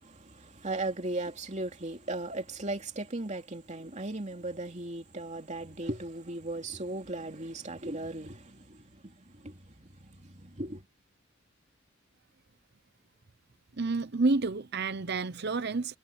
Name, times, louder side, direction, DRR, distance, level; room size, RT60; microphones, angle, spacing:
voice 1, 0.0-10.8, right 2 dB, 35° right, 2.8 m, -37 dB
voice 2, 13.8-16.0, right 3 dB, 50° right, 0.8 m, -29 dB
head